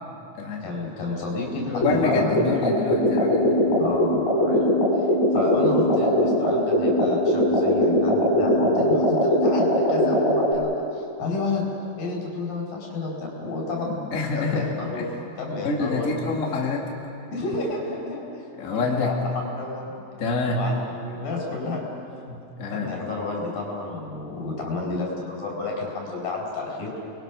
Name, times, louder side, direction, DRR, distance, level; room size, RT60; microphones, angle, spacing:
voice 1, 0.6-2.5 3.8-4.6 5.3-11.7 12.0-14.0 14.3-15.0 15.4-16.5 17.3-18.2 18.7-19.9 20.5-21.9 22.7-26.9, left 3 dB, 65° left, -1 dB, 6.5 m, -30 dB
voice 2, 1.7-3.6 14.1-14.7 14.9-15.1 15.6-16.8 18.5-19.1 20.2-20.6 22.3-22.9, left 3 dB, 25° left, -1 dB, 2.1 m, -26 dB
sound 1, 1.8-10.5, equal, 50° left, 6.5 m, -21 dB
30.0 x 21.5 x 6.2 m, 2.7 s
omnidirectional pair, 4.3 m